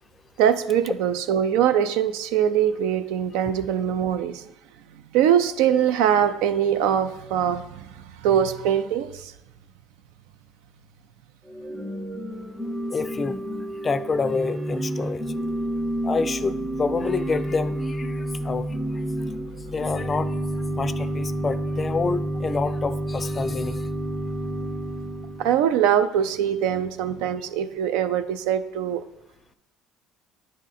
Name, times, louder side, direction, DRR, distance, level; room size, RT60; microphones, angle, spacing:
voice 1, 0.4-4.5 5.1-9.3 25.4-29.0, right 9 dB, 85° right, 11 dB, 0.4 m, -22 dB
Organ / Church bell, 11.4-25.6, right 1 dB, 10° right, 0.7 m, -29 dB
voice 2, 12.9-13.4 13.8-15.2 16.0-18.7 19.6-20.4 20.7-23.9, left 4 dB, 30° left, 14 dB, 0.3 m, -27 dB
9.9 x 3.7 x 4.1 m, 0.87 s
cardioid pair, 105°, 0 cm